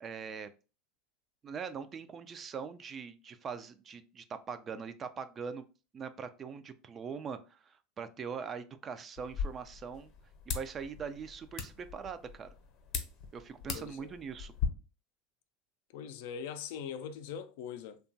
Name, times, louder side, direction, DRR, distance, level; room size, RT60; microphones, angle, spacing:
voice 1, 0.0-0.5 1.4-5.6 5.9-10.1 10.5-12.5 13.3-14.5, right 6 dB, 35° right, 0.3 m, -42 dB
sound 1, 9.2-14.7, left 6 dB, 50° left, 0.7 m, -40 dB
voice 2, 13.7-14.2 15.9-18.0, left 7 dB, 70° left, 0.3 m, -42 dB
2.8 x 2.2 x 2.6 m
hypercardioid pair, 95°, 0 cm